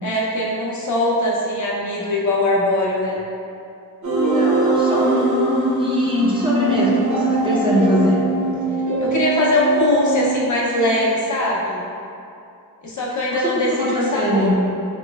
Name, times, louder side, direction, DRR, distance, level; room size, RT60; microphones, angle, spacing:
voice 1, 0.0-3.2 9.0-11.8 12.8-14.5, left 1 dB, 50° left, -5 dB, 0.5 m, -21 dB
sound 1, 4.0-10.4, right 2 dB, 50° right, 0.8 m, -21 dB
voice 2, 4.3-5.3 5.8-8.2 13.3-14.5, left 1 dB, 15° right, -8 dB, 0.6 m, -22 dB
3.0 x 3.0 x 2.2 m, 2.6 s
wide cardioid pair, 95°, 38 cm